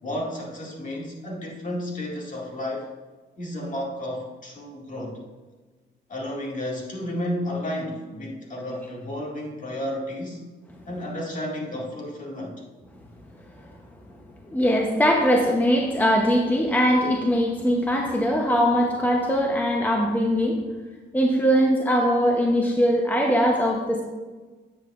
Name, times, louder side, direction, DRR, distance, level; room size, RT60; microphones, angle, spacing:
voice 1, 0.0-2.9 3.4-5.2 6.1-10.4 10.9-12.6, left 1 dB, 40° left, -2 dB, 2.1 m, -32 dB
voice 2, 14.5-20.6 21.1-24.0, equal, 10° left, 0 dB, 0.8 m, -21 dB
9.0 x 7.8 x 2.5 m, 1.3 s
cardioid pair, 90°, 20 cm